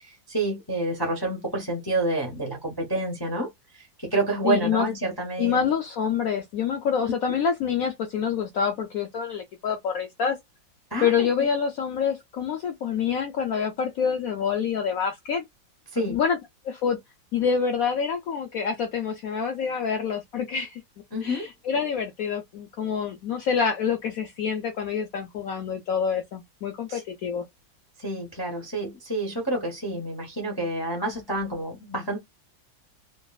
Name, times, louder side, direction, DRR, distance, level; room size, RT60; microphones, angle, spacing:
voice 1, 0.0-5.6 10.9-11.1 15.9-16.2 21.1-21.5 26.9-27.0 28.0-32.2, right 2 dB, 20° left, 0.6 m, -28 dB
voice 2, 4.4-4.9 5.4-10.4 11.0-15.4 16.0-16.4 16.6-17.0 17.3-20.8 21.2-27.4, left 7 dB, 75° left, 0.8 m, -26 dB
3.1 x 2.5 x 2.3 m
omnidirectional pair, 2.1 m